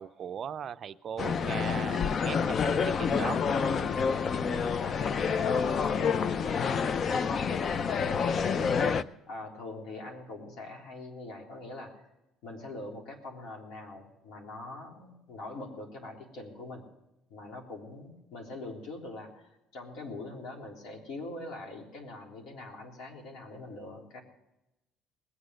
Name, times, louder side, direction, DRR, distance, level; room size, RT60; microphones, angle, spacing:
voice 1, 0.0-3.4, right 8 dB, 45° right, 13 dB, 0.5 m, -38 dB
sound 1, 1.2-9.0, left 6 dB, 40° left, 0.5 m, -28 dB
voice 2, 3.6-12.1 12.4-16.8 17.3-24.2, left 2 dB, 70° left, 0 dB, 3.6 m, -43 dB
20.0 x 8.4 x 6.4 m, 0.93 s
cardioid pair, 120°, 0 cm